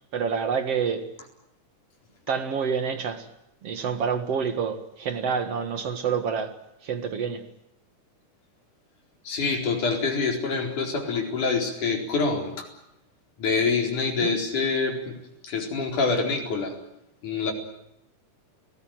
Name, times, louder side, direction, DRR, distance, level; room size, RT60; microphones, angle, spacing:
voice 1, 0.1-1.1 2.3-3.3 3.6-6.6 6.8-7.4 14.2-14.4, right 6 dB, 55° right, 2.6 m, -27 dB
voice 2, 9.3-12.7 13.4-15.1 15.4-16.7 17.2-17.5, left 4 dB, 75° left, 5.8 m, -26 dB
30.0 x 19.5 x 9.1 m
omnidirectional pair, 3.5 m